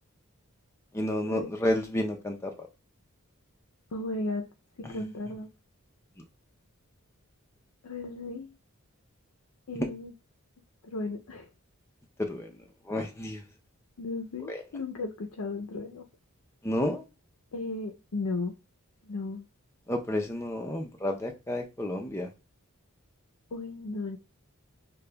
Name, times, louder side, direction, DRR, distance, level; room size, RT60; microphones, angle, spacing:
voice 1, 0.9-2.7 4.8-5.0 9.8-9.9 12.2-12.5 12.9-13.4 14.5-14.6 16.6-17.0 19.9-22.3, left 1 dB, 10° left, 2 dB, 0.5 m, -31 dB
voice 2, 3.9-4.5 4.8-5.5 7.8-8.5 9.7-10.1 10.8-11.5 14.0-16.0 17.5-18.5 19.0-19.4 23.5-24.2, left 3 dB, 75° left, 4 dB, 0.5 m, -35 dB
6.6 x 2.2 x 2.2 m, 0.29 s
head